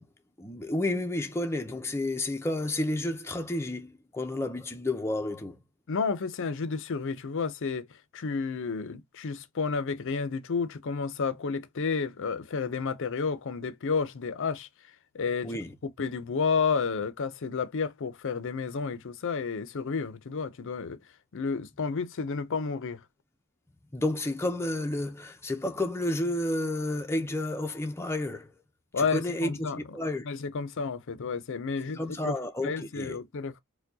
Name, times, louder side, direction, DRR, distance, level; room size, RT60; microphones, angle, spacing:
voice 1, 0.4-5.6 15.4-15.7 23.9-28.5 29.0-30.3 31.9-33.2, left 1 dB, 10° left, 0.5 m, -31 dB
voice 2, 5.9-7.9 8.1-14.7 15.1-15.5 16.0-21.0 21.3-23.0 28.9-29.8 30.2-33.6, left 5 dB, 60° left, 0.5 m, -31 dB
4.5 x 2.2 x 2.7 m
head